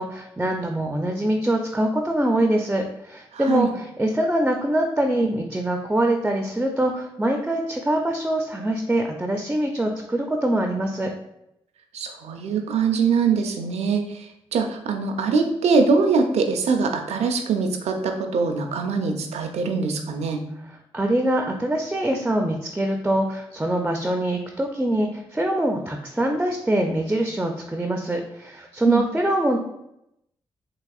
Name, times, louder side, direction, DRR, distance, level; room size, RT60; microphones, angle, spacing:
voice 1, 0.0-11.1 20.9-29.6, right 1 dB, 10° right, 3 dB, 0.4 m, -24 dB
voice 2, 3.3-3.7 11.9-14.0 14.5-20.4 28.9-29.0, right 4 dB, 75° right, 5 dB, 0.4 m, -22 dB
3.6 x 2.8 x 2.3 m, 0.82 s
supercardioid pair, 45°, 11 cm